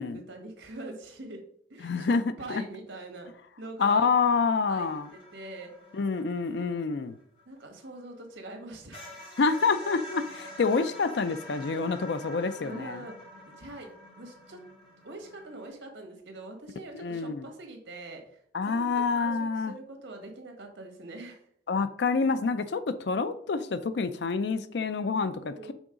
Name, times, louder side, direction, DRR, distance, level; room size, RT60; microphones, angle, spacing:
voice 1, 0.1-1.4 1.7-3.3 3.6-4.1 4.7-5.7 7.5-9.1 12.6-13.2 13.5-13.9 14.2-14.6 15.0-19.4 19.7-21.4 25.4-25.7, right 2 dB, 80° right, 3 dB, 1.6 m, -43 dB
voice 2, 1.8-2.2 2.5-2.6 3.8-5.1 5.9-7.2 9.4-13.0 17.0-17.5 18.5-19.7 21.7-25.7, left 4 dB, 65° left, 12 dB, 0.4 m, -27 dB
sound 1, 4.8-8.2 8.5-8.6 8.9-15.7, left 1 dB, 30° left, 2.3 m, -46 dB
6.2 x 3.8 x 5.0 m, 0.64 s
head